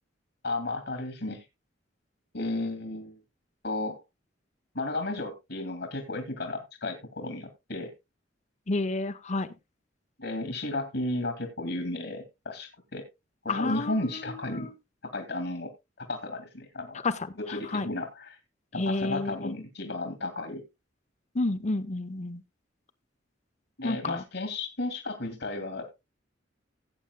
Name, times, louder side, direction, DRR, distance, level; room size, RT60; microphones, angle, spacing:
voice 1, 0.4-1.4 2.3-3.2 3.6-4.0 4.7-7.9 10.2-13.1 13.4-14.7 15.1-15.7 16.0-17.0 17.4-18.4 18.7-20.6 23.8-26.0, left 2 dB, 70° left, 2.2 m, -33 dB
voice 2, 8.7-9.5 13.5-14.7 17.0-17.9 18.8-19.5 21.3-22.4 23.8-24.2, left 2 dB, 40° left, 0.8 m, -30 dB
17.0 x 8.9 x 2.2 m
head